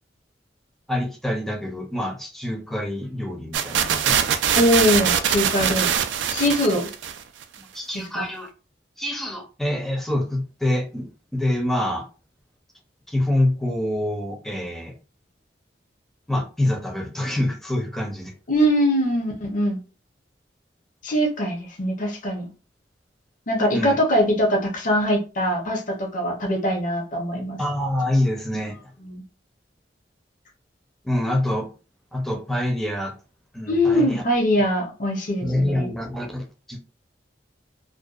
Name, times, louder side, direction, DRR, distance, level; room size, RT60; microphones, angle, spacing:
voice 1, 0.9-4.2 7.6-8.5 9.0-12.1 13.1-15.0 16.3-18.3 23.7-24.0 27.6-28.8 31.0-31.7 32.1-33.1 33.5-34.2 35.4-36.8, left 1 dB, ahead, 2 dB, 0.5 m, -26 dB
sound 1, 3.5-7.4, right 8 dB, 80° right, 0.3 m, -22 dB
voice 2, 4.6-5.9 6.3-6.9 7.9-8.2 18.5-19.8 21.0-22.5 23.5-27.6 29.0-29.2 33.7-35.9, equal, 50° left, 1 dB, 0.7 m, -22 dB
2.6 x 2.1 x 2.3 m, 0.34 s
head